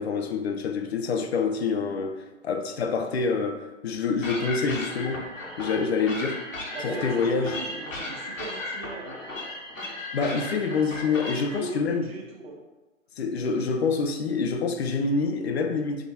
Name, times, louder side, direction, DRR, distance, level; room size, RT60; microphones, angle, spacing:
voice 1, 0.0-5.3 5.6-6.4 6.8-7.5 10.1-12.1 13.2-16.1, left 4 dB, 55° left, 5 dB, 0.8 m, -26 dB
sound 1, 4.2-11.6, left 2 dB, 85° left, 1.6 m, -36 dB
voice 2, 6.7-9.2 11.5-12.6, right 2 dB, 50° right, 2 dB, 1.3 m, -38 dB
8.2 x 3.0 x 4.2 m, 1.2 s
figure-of-eight pair, 115°, 39 cm